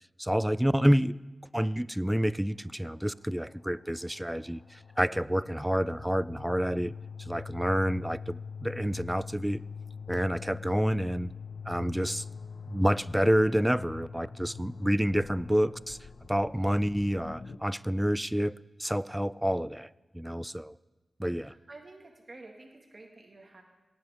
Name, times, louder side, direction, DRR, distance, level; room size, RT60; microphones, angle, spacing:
voice 1, 0.2-1.2 1.5-6.9 7.2-9.6 10.1-11.3 11.7-12.2 12.7-16.0 16.3-19.9 20.1-20.8 21.2-21.5, equal, 5° right, 18 dB, 0.3 m, -28 dB
sound 1, 3.3-17.6, left 5 dB, 85° left, 0.7 m, -44 dB
voice 2, 21.5-23.6, right 2 dB, 45° right, 1 dB, 2.0 m, -50 dB
18.0 x 7.8 x 3.6 m, 1.2 s
cardioid pair, 50°, 0 cm